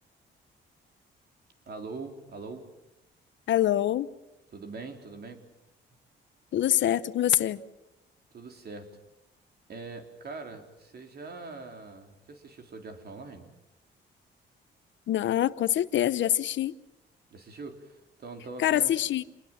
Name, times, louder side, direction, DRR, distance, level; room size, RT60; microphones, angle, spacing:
voice 1, 1.7-2.7 4.5-5.4 8.3-9.0 9.7-13.5 17.3-18.9, right 3 dB, 55° right, 5 dB, 4.1 m, -42 dB
voice 2, 3.5-4.1 6.5-7.6 15.1-16.7 18.6-19.2, left 12 dB, 70° left, 15 dB, 1.0 m, -25 dB
27.5 x 21.0 x 7.6 m, 0.91 s
cardioid pair, 90°, 20 cm